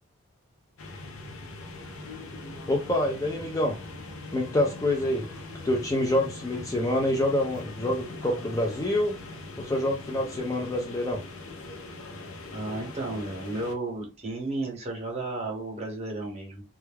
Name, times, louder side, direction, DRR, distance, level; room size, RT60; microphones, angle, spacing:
sound 1, 0.8-13.8, left 2 dB, 70° left, 0.6 m, -41 dB
voice 1, 2.7-3.8 4.3-5.3 5.6-9.2 9.6-11.2, left 1 dB, 15° left, 0.3 m, -26 dB
voice 2, 12.5-16.6, right 2 dB, 30° right, 0.9 m, -33 dB
2.3 x 2.1 x 3.2 m
head